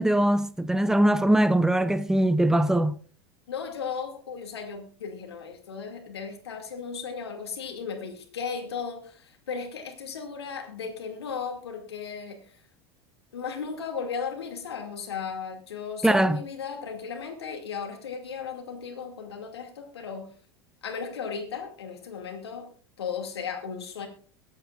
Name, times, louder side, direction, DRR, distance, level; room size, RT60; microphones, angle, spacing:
voice 1, 0.0-3.0 16.0-16.4, right 1 dB, 5° right, 0.8 m, -21 dB
voice 2, 3.5-12.6 13.3-20.3 20.8-22.7 23.0-24.1, left 6 dB, 80° left, 2.5 m, -36 dB
22.5 x 8.6 x 2.5 m
hypercardioid pair, 85°, 13 cm